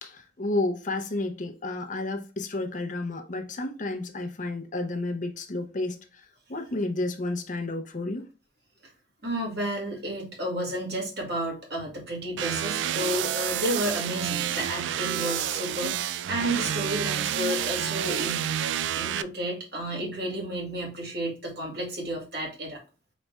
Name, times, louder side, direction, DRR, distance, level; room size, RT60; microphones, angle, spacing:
voice 1, 0.0-6.0 6.5-8.2, left 2 dB, 45° left, 0.7 m, -31 dB
voice 2, 9.2-18.5 18.9-22.8, right 1 dB, 65° right, 2.1 m, -31 dB
sound 1, 12.4-19.2, right 10 dB, 85° right, 0.3 m, -29 dB
4.6 x 4.1 x 2.2 m
head